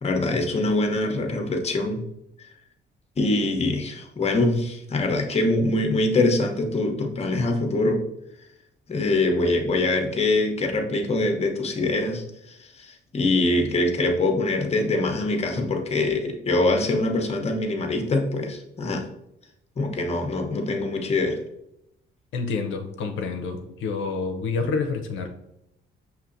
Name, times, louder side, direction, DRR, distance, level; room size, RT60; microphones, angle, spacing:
voice 1, 0.0-2.0 3.2-8.0 8.9-19.0 19.8-21.4, left 2 dB, 30° left, 3 dB, 0.8 m, -24 dB
voice 2, 22.3-25.3, left 4 dB, 80° left, 4 dB, 0.5 m, -28 dB
5.6 x 2.9 x 2.5 m, 0.83 s
cardioid pair, 90°, 20 cm